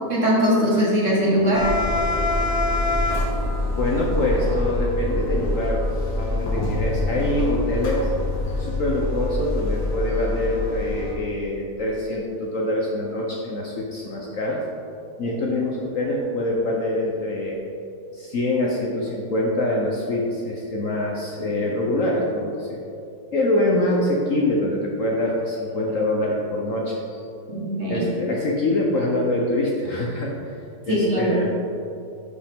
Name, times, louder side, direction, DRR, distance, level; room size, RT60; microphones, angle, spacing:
voice 1, 0.1-1.7 27.5-28.1 30.9-31.4, equal, 45° right, -5 dB, 1.8 m, -21 dB
sound 1, 1.5-11.1, left 2 dB, 85° left, 2.1 m, -25 dB
voice 2, 3.6-5.8 6.2-8.1 8.6-14.6 15.2-17.6 18.1-22.8 23.3-27.2 27.9-30.3 30.9-31.5, left 1 dB, 55° left, -2 dB, 1.0 m, -24 dB
11.0 x 5.3 x 3.5 m, 2.6 s
omnidirectional pair, 2.0 m